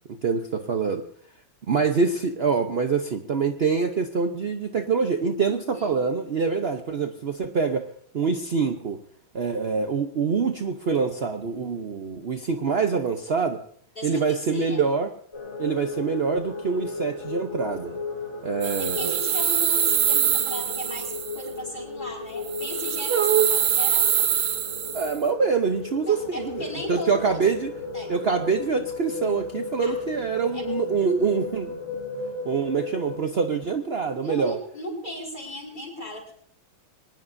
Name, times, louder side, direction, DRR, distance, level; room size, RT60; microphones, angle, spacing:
voice 1, 0.1-1.0 1.7-9.0 9.3-13.6 14.0-15.1 15.6-18.0 18.4-19.1 23.1-23.5 24.9-27.7 28.1-31.8 32.4-34.6, right 5 dB, 60° right, 5 dB, 0.6 m, -25 dB
voice 2, 5.7-6.0 13.9-14.9 18.6-24.3 26.1-27.4 27.9-28.1 29.8-30.0 30.5-30.7 34.2-36.3, equal, 20° left, -1 dB, 4.9 m, -37 dB
sound 1, 15.3-33.2, left 4 dB, 55° left, 4.5 m, -35 dB
sound 2, 18.6-21.5 22.4-25.2, right 9 dB, 85° right, 2.0 m, -24 dB
23.5 x 19.5 x 2.7 m, 0.62 s
omnidirectional pair, 2.3 m